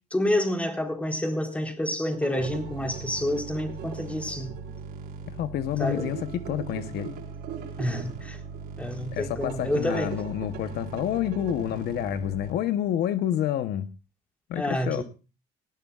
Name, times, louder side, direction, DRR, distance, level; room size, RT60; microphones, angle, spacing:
voice 1, 0.1-4.6 5.8-6.1 7.8-8.4 8.8-10.1 14.6-15.0, left 1 dB, 10° left, 3.7 m, -28 dB
sound 1, 2.0-12.8, right 9 dB, 85° right, 4.6 m, -42 dB
sound 2, 2.4-12.5, right 4 dB, 60° right, 4.4 m, -40 dB
voice 2, 5.3-7.1 9.1-13.9 14.5-15.0, left 11 dB, 70° left, 0.9 m, -29 dB
19.0 x 17.5 x 2.4 m
cardioid pair, 110°, 17 cm